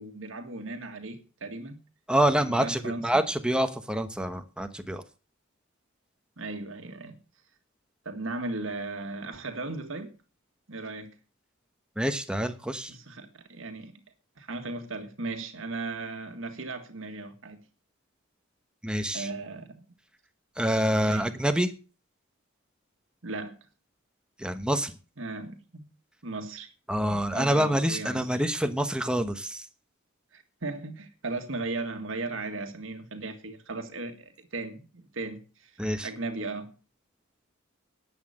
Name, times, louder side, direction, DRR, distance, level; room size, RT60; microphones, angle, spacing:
voice 1, 0.0-1.8 2.5-3.3 6.4-7.2 8.1-10.1 10.7-11.2 12.9-13.9 14.4-17.6 19.1-19.9 21.0-21.3 23.2-23.6 25.2-25.9 26.2-26.7 27.1-28.4 30.3-35.8 36.0-36.7, right 3 dB, 70° right, 1.8 m, -37 dB
voice 2, 2.1-5.0 12.0-12.9 18.8-19.3 20.6-21.7 24.4-24.9 26.9-29.6 35.8-36.1, right 1 dB, 5° right, 1.1 m, -26 dB
11.0 x 8.2 x 6.5 m
head